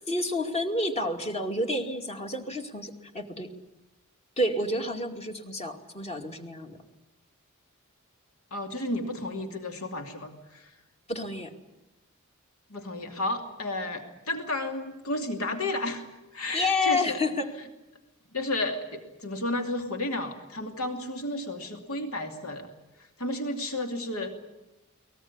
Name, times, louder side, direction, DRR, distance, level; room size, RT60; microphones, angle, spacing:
voice 1, 0.0-3.5 4.4-6.8 11.1-11.5 16.5-17.5, left 2 dB, 30° left, 5 dB, 2.4 m, -29 dB
voice 2, 8.5-10.7 12.7-16.0 16.3-17.2 18.3-22.7 23.2-24.3, left 2 dB, 70° left, 5 dB, 2.7 m, -32 dB
23.0 x 19.5 x 9.8 m, 0.98 s
head